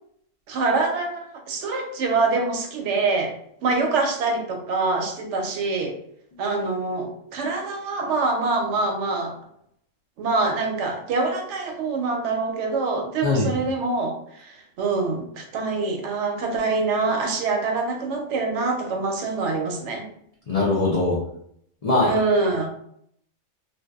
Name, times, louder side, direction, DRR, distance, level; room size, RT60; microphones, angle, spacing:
voice 1, 0.5-3.3 3.6-5.9 6.4-9.3 10.2-20.1 22.0-22.7, right 3 dB, 70° right, 3 dB, 0.9 m, -25 dB
voice 2, 13.2-13.6 20.5-21.2 21.8-22.1, left 3 dB, 60° left, -6 dB, 0.4 m, -21 dB
2.6 x 2.2 x 2.2 m, 0.70 s
omnidirectional pair, 1.3 m